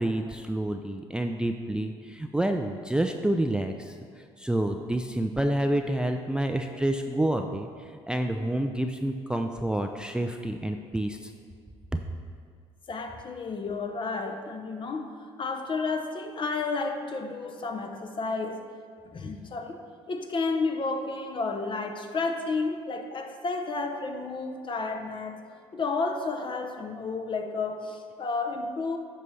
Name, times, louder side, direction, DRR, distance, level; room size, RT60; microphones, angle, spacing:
voice 1, 0.0-11.3, right 1 dB, 5° right, 5 dB, 0.4 m, -28 dB
voice 2, 12.9-18.6 19.1-19.8 20.1-25.4 25.7-29.0, left 3 dB, 40° left, 5 dB, 0.8 m, -31 dB
9.4 x 5.5 x 3.3 m, 2.1 s
hypercardioid pair, 65°, 14 cm